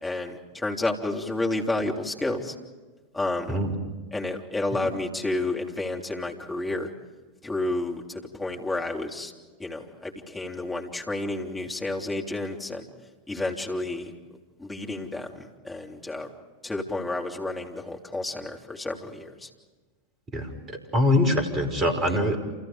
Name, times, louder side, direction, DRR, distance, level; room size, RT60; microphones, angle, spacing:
voice 1, 0.0-2.5 3.1-3.7 4.1-6.9 7.4-9.3 9.6-12.8 13.3-14.1 14.6-16.3 16.6-19.5 22.1-22.2, left 2 dB, 10° left, 1 dB, 3.4 m, -30 dB
voice 2, 20.3-22.4, left 1 dB, 25° right, 7 dB, 5.4 m, -24 dB
29.5 x 28.5 x 5.1 m, 1.3 s
figure-of-eight pair, 90°, 0 cm